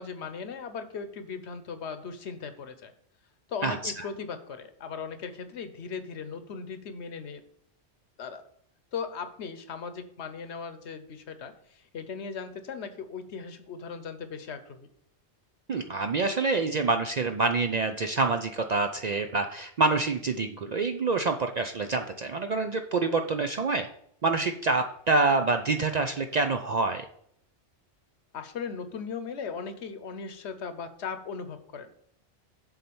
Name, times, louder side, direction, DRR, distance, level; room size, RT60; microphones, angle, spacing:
voice 1, 0.0-2.9 3.5-7.4 8.2-8.4 8.9-14.9 28.3-32.1, left 5 dB, 70° left, 9 dB, 1.1 m, -38 dB
voice 2, 3.6-4.1 15.7-23.9 24.2-27.1, right 3 dB, 55° right, 6 dB, 0.5 m, -27 dB
7.4 x 4.2 x 6.9 m, 0.69 s
omnidirectional pair, 1.2 m